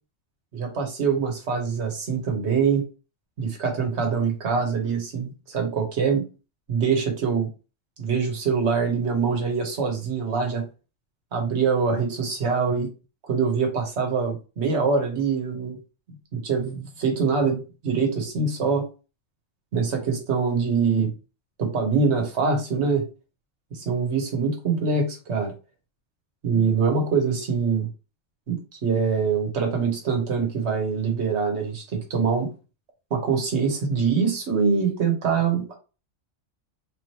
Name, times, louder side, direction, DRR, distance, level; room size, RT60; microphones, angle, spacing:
voice 1, 0.5-2.8 3.4-6.2 6.7-7.5 8.0-10.7 11.3-12.9 13.2-15.8 16.3-18.8 19.7-21.1 21.6-23.0 23.7-25.5 26.4-27.9 28.5-32.5 33.1-35.7, right 5 dB, 65° right, 2 dB, 1.3 m, -24 dB
3.7 x 3.1 x 2.9 m, 0.32 s
omnidirectional pair, 1.3 m